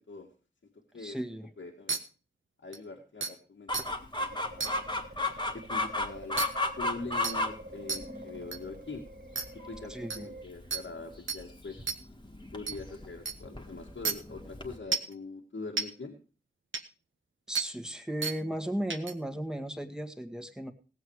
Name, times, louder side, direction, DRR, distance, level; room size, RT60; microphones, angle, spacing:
voice 1, 1.0-1.5 9.9-10.3 17.5-20.7, right 1 dB, 5° right, 5 dB, 1.8 m, -35 dB
voice 2, 1.6-2.0 2.6-3.7 4.2-4.8 5.5-6.4 6.8-9.0 9.7-11.8 12.5-16.2, left 3 dB, 85° left, -1 dB, 2.0 m, -43 dB
sound 1, 1.9-2.0 2.7-2.8 3.2-3.3 3.7-3.8 4.6-4.7 6.4-6.5 7.2-7.4 7.9-8.0 8.5-8.6 9.4-9.5 10.1-10.2 10.7-10.8 11.3-11.4 11.9-12.0 12.7-12.8 13.3-13.4 14.0-14.1 14.9-15.1 15.8-15.9 16.7-16.8 17.5-17.7 18.2-18.4 18.9-19.1, right 5 dB, 85° right, 1.3 m, -31 dB
Chicken rooster, 3.7-14.8, left 2 dB, 25° left, 1.8 m, -35 dB
sound 2, 4.3-10.4, right 1 dB, 55° right, 1.5 m, -48 dB
17.5 x 8.0 x 4.8 m, 0.35 s
wide cardioid pair, 70°, 20 cm